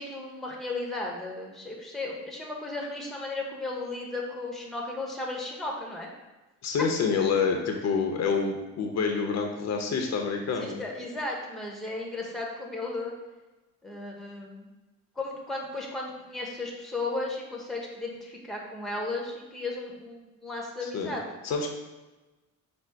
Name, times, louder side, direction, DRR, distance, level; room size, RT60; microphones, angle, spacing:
voice 1, 0.0-6.1 10.6-13.1 13.8-14.7 15.2-21.2, left 2 dB, ahead, -1 dB, 0.8 m, -35 dB
voice 2, 6.6-10.8 20.8-21.1 21.4-21.7, left 5 dB, 60° left, 3 dB, 0.7 m, -27 dB
5.0 x 2.0 x 4.5 m, 1.1 s
cardioid pair, 90°, 30 cm